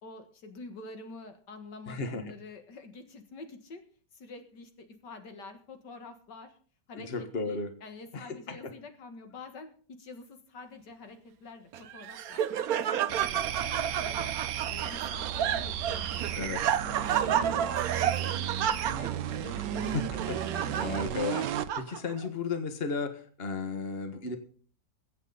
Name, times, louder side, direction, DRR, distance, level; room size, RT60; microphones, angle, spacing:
voice 1, 0.0-3.8 4.1-6.5 6.9-12.5 12.8-14.3 14.7-16.5 16.8-19.1 19.4-20.0, left 3 dB, 85° left, 7 dB, 2.3 m, -47 dB
voice 2, 1.9-2.2 6.9-7.7 8.1-8.6 16.3-16.6 19.9-24.4, left 4 dB, 35° left, 7 dB, 1.7 m, -34 dB
Laughter, 11.7-22.3, right 9 dB, 65° right, 1.2 m, -31 dB
sound 1, 13.1-21.7, right 10 dB, 85° right, 1.4 m, -34 dB
22.0 x 8.2 x 4.1 m, 0.43 s
omnidirectional pair, 1.8 m